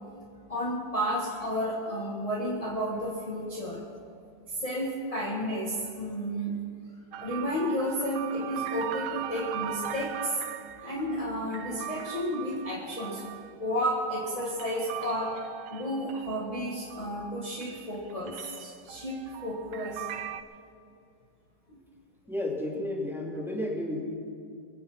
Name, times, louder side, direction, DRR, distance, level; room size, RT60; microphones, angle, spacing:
voice 1, 0.5-3.8 4.5-6.5 7.2-10.4 10.8-13.2 13.6-15.3 15.7-20.1 21.7-21.8, equal, 20° left, -5 dB, 1.7 m, -32 dB
sound 1, 7.1-17.3 17.6-20.4, right 11 dB, 85° right, 1.3 m, -40 dB
voice 2, 22.3-24.0, left 1 dB, ahead, -3 dB, 2.3 m, -32 dB
22.5 x 8.6 x 6.0 m, 2.5 s
omnidirectional pair, 1.9 m